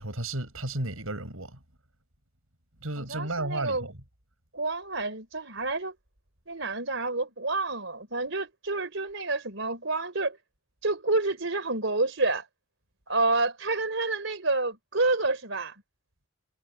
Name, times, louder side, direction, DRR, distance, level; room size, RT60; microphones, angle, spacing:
voice 1, 0.0-1.6 2.8-3.9, right 2 dB, 80° right, 6.3 m, -33 dB
voice 2, 3.0-3.9 4.5-5.9 6.5-10.4 10.8-12.5 13.1-15.7, right 3 dB, 60° right, 4.6 m, -28 dB
head